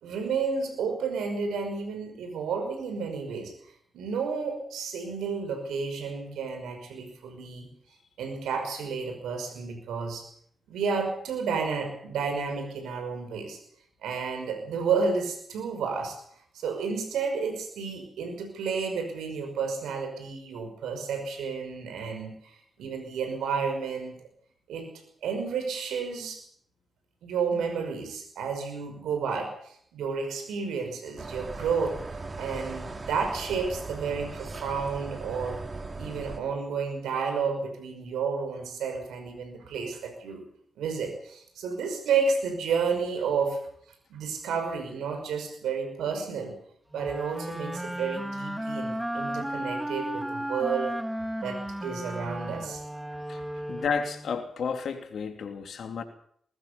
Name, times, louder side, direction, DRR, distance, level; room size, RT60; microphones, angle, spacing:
voice 1, 0.0-3.5 3.9-7.7 8.2-10.3 10.7-13.6 14.0-16.2 16.5-24.2 24.7-24.9 25.2-26.4 27.2-32.0 32.4-35.6 36.0-40.4 40.8-43.6 44.1-46.6 46.9-51.0 51.4-52.8, right 5 dB, 80° right, 6 dB, 5.6 m, -31 dB
sound 1, 31.2-36.4, right 3 dB, 40° right, 3.7 m, -38 dB
sound 2, 46.9-54.4, right 1 dB, 10° right, 3.4 m, -34 dB
voice 2, 53.7-56.0, left 6 dB, 70° left, 6 dB, 3.0 m, -32 dB
21.0 x 17.5 x 7.1 m, 0.65 s
hypercardioid pair, 40°, 0 cm